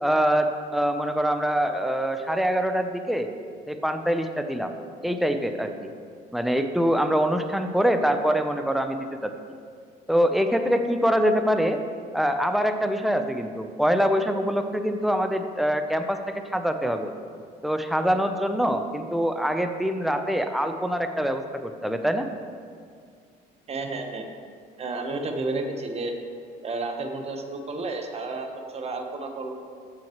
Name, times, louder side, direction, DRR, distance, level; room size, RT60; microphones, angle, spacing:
voice 1, 0.0-3.3 3.7-4.8 5.0-5.7 6.3-9.3 10.1-11.8 12.1-17.1 17.6-22.3, equal, ahead, 6 dB, 0.7 m, -24 dB
voice 2, 23.7-24.3 24.8-26.1 26.6-29.5, right 3 dB, 35° right, 4 dB, 1.2 m, -31 dB
14.5 x 7.6 x 3.1 m, 2.1 s
cardioid pair, 110°, 17 cm